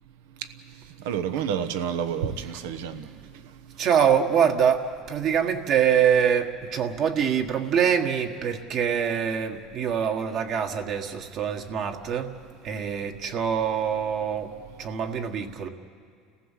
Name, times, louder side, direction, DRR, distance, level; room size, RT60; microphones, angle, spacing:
voice 1, 1.0-3.0, right 8 dB, 85° right, 10 dB, 1.1 m, -29 dB
voice 2, 3.8-12.3 12.6-14.5 14.8-15.7, right 8 dB, 55° right, 4 dB, 1.7 m, -24 dB
30.0 x 15.0 x 7.5 m, 2.1 s
supercardioid pair, 105°, 0 cm